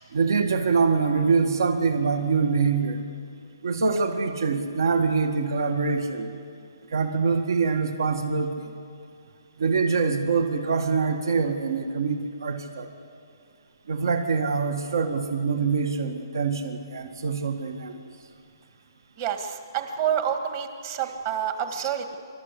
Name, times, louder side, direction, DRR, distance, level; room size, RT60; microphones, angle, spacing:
voice 1, 0.1-3.0 3.6-6.3 6.9-8.5 9.6-12.9 13.9-17.9 21.8-21.9, right 5 dB, 60° right, 6 dB, 1.8 m, -24 dB
voice 2, 19.2-22.2, right 9 dB, 30° right, 6 dB, 1.7 m, -28 dB
28.5 x 13.0 x 8.3 m, 2.4 s
hypercardioid pair, 165°, 2 cm